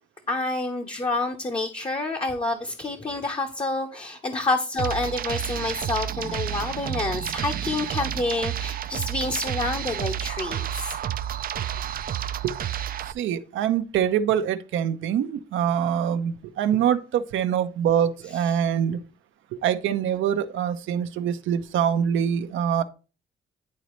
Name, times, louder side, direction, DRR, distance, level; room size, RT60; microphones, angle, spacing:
voice 1, 0.3-11.0 18.4-18.6, left 2 dB, 25° left, 0.9 m, -28 dB
sound 1, 4.8-13.1, right 10 dB, 45° right, 0.4 m, -30 dB
voice 2, 13.1-19.0 19.5-22.8, right 9 dB, 80° right, 0.7 m, -24 dB
10.5 x 4.0 x 3.1 m
cardioid pair, 90°, 20 cm